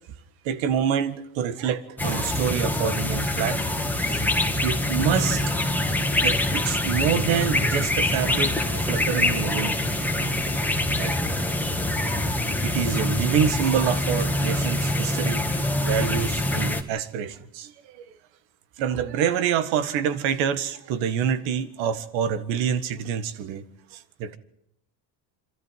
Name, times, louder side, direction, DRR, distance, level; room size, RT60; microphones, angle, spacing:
voice 1, 0.5-3.6 4.1-4.3 4.6-5.5 6.2-9.8 11.0-11.2 12.6-18.1 18.8-23.6 23.9-24.4, right 8 dB, 80° right, 11 dB, 1.8 m, -27 dB
sound 1, 2.0-16.8, left 1 dB, 5° left, 1.9 m, -25 dB
26.5 x 13.5 x 9.2 m, 0.79 s
cardioid pair, 135°, 46 cm